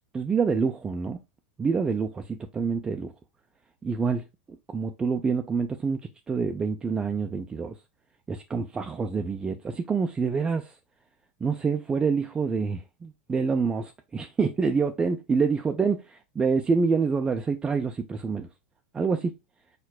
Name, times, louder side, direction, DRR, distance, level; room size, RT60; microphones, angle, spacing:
voice 1, 0.1-1.2 1.6-3.1 3.8-4.2 4.7-7.8 8.3-10.7 11.4-18.5 18.9-19.3, right 5 dB, 15° right, 0.4 m, -27 dB
4.5 x 4.4 x 2.2 m
supercardioid pair, 125°, 5 cm